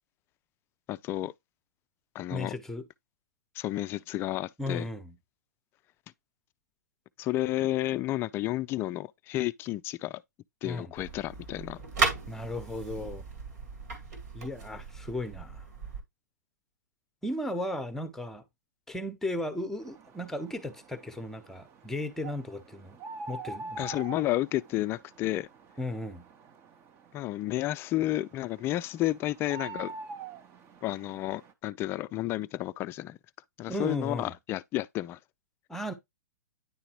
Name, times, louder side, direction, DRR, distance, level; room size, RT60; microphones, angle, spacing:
voice 1, 0.9-1.3 2.1-2.5 3.6-4.9 7.2-10.2 10.6-11.8 23.8-25.5 27.1-29.9 30.8-33.2 33.6-35.2, left 15 dB, 25° left, 0.3 m, -31 dB
voice 2, 2.3-2.8 4.6-5.2 10.6-10.9 12.3-13.2 14.3-15.6 17.2-18.4 18.9-23.0 23.3-23.9 25.8-26.3 33.7-34.3 35.7-35.9, left 1 dB, 5° left, 1.0 m, -35 dB
sound 1, 11.0-16.0, right 4 dB, 65° right, 2.3 m, -35 dB
sound 2, 19.8-31.5, right 4 dB, 25° right, 0.8 m, -46 dB
9.9 x 3.8 x 3.0 m
hypercardioid pair, 115°, 9 cm